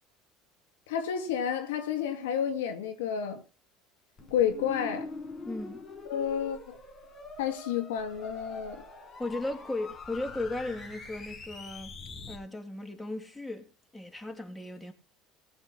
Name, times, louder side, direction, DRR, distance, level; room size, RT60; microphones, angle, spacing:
voice 1, 0.9-3.4 4.3-5.1 6.1-6.8 7.4-8.8, left 8 dB, 85° left, 2.4 m, -30 dB
sound 1, 4.2-12.4, left 3 dB, 35° left, 6.1 m, -44 dB
voice 2, 5.4-5.8 9.2-11.9 12.3-14.9, left 2 dB, 10° left, 3.0 m, -36 dB
19.0 x 8.2 x 4.2 m
hypercardioid pair, 75°, 0 cm